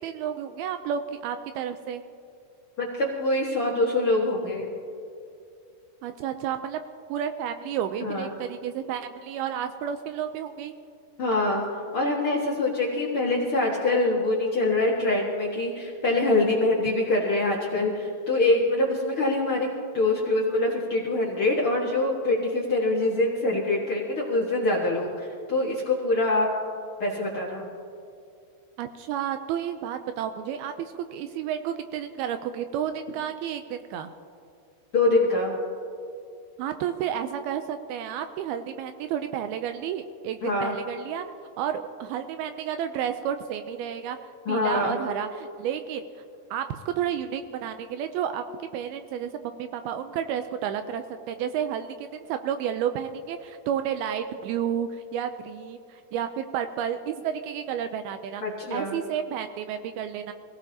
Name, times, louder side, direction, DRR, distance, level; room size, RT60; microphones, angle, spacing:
voice 1, 0.0-2.0 6.0-6.8 7.1-10.7 28.8-34.1 36.6-41.2 41.6-46.0 46.5-58.4 58.7-60.3, right 9 dB, 85° right, 8 dB, 2.3 m, -31 dB
voice 2, 2.8-4.7 8.0-8.3 11.2-11.7 11.9-19.7 19.9-26.5 27.0-27.7 34.9-35.5 40.4-40.7 44.4-45.0 58.4-59.0, left 2 dB, 55° left, -4 dB, 1.5 m, -24 dB
25.5 x 17.5 x 2.8 m, 2.5 s
omnidirectional pair, 4.9 m